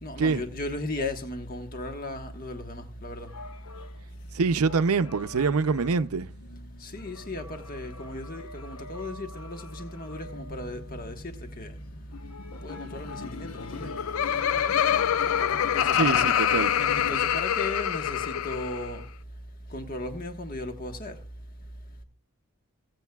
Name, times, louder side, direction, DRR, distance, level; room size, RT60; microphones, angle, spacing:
voice 1, 0.0-3.3 6.8-11.7 12.6-13.9 15.7-16.3 16.8-19.0 19.7-21.2, left 1 dB, 40° left, 1.3 m, -36 dB
sound 1, 2.9-17.2, left 4 dB, 90° left, 0.9 m, -42 dB
voice 2, 4.3-6.3 15.9-16.7, right 4 dB, 85° right, 0.6 m, -25 dB
Laughter, 13.7-18.9, left 9 dB, 70° left, 0.4 m, -25 dB
22.0 x 8.0 x 2.3 m
head